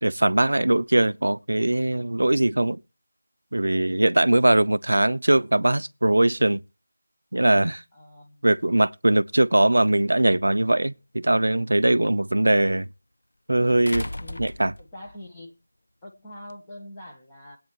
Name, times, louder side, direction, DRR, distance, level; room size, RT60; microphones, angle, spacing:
voice 1, 0.0-2.8 3.5-6.6 7.3-7.8 8.4-12.9 13.5-14.1 14.4-14.7, right 1 dB, 80° right, 0.7 m, -21 dB
voice 2, 7.9-8.5 14.2-15.6 16.0-17.6, left 1 dB, 10° left, 1.3 m, -44 dB
sound 1, 10.6-10.7 13.9-15.2 16.5-16.6, left 1 dB, 90° left, 0.5 m, -34 dB
22.0 x 8.8 x 3.0 m
figure-of-eight pair, 180°, 0 cm